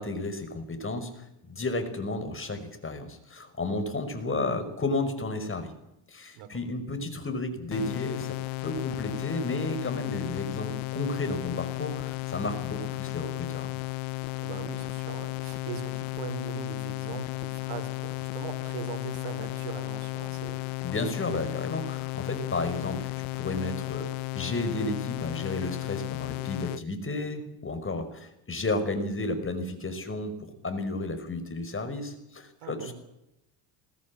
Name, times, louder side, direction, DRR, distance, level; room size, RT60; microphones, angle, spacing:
voice 1, 0.0-5.7 6.1-8.4 8.6-13.7 20.8-23.1 23.3-32.9, left 2 dB, 25° left, 8 dB, 5.4 m, -32 dB
sound 1, 7.7-26.8, left 23 dB, 80° left, 0.8 m, -34 dB
voice 2, 14.3-20.6 32.6-32.9, right 8 dB, 85° right, 8 dB, 4.9 m, -40 dB
20.5 x 20.0 x 8.6 m, 0.88 s
cardioid pair, 95°, 47 cm